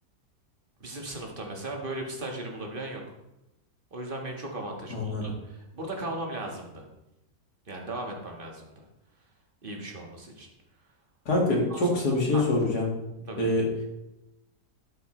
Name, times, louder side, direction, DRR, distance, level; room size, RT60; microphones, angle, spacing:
voice 1, 0.8-3.0 3.9-6.9 7.7-8.9 9.6-10.5 11.7-12.5 13.3-13.5, right 1 dB, 30° right, 1 dB, 1.7 m, -37 dB
voice 2, 4.9-5.3 11.3-12.9 13.4-13.7, left 2 dB, 65° left, -1 dB, 2.7 m, -25 dB
12.5 x 8.1 x 3.2 m, 0.91 s
omnidirectional pair, 1.8 m